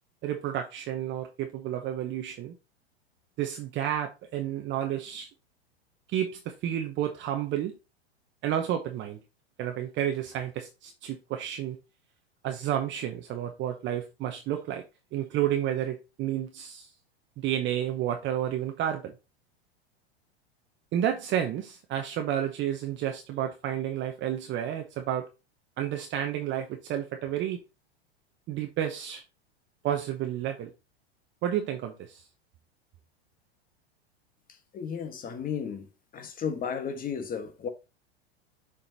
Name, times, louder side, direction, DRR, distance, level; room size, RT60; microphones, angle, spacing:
voice 1, 0.2-2.5 3.4-5.3 6.1-7.7 8.4-9.2 9.6-11.8 12.4-14.8 15.1-16.9 17.4-19.1 20.9-25.3 25.8-27.6 28.5-29.2 29.8-30.7 31.4-32.2, right 11 dB, 35° right, 0.9 m, -31 dB
voice 2, 34.7-35.9 36.1-37.7, left 7 dB, 25° left, 1.3 m, -33 dB
7.1 x 5.0 x 2.8 m
hypercardioid pair, 105°, 32 cm